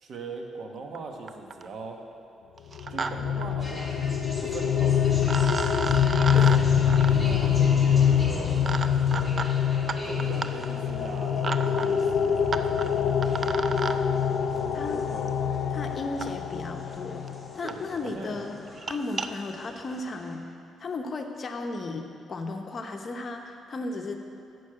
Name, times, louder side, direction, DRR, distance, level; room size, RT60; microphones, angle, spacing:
voice 1, 0.0-2.0 2.9-4.1 4.4-5.3 7.1-8.7 10.0-13.2 14.5-15.4 17.6-18.7, right 3 dB, 60° right, 2 dB, 1.1 m, -41 dB
sound 1, 0.9-1.0 1.3-1.7 2.6-3.1 3.4-3.5 4.8-4.9 5.3-14.0 15.3-15.4 16.2-16.3 17.0-17.1 17.3-17.4 17.7-17.8 18.1-18.3 18.7-19.3, right 4 dB, 45° right, 0.4 m, -34 dB
sound 2, 2.8-17.5, left 8 dB, 85° left, 0.4 m, -25 dB
sound 3, 3.6-20.4, equal, 5° left, 1.4 m, -42 dB
voice 2, 6.3-6.6 14.7-15.1 15.7-17.3 17.5-18.6 18.9-20.5 20.8-24.2, left 3 dB, 40° left, 4 dB, 0.8 m, -35 dB
6.5 x 6.3 x 7.4 m, 2.4 s
cardioid pair, 90°, 0 cm